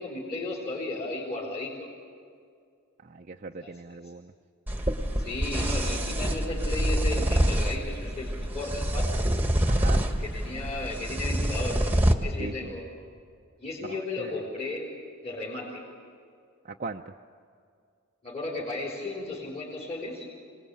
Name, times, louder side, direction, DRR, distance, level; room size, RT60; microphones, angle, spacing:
voice 1, 0.0-1.9 3.6-3.8 5.2-9.2 10.2-11.9 12.2-12.9 13.6-14.9 15.2-15.8 18.2-20.3, left 2 dB, 30° left, -6 dB, 4.0 m, -34 dB
voice 2, 3.0-4.3 9.7-10.0 12.4-12.7 13.8-14.3 16.6-17.1, right 4 dB, 35° right, 2 dB, 0.5 m, -39 dB
sound 1, 4.7-12.1, right 1 dB, 10° right, 1.3 m, -26 dB
26.0 x 19.0 x 8.3 m, 2.3 s
head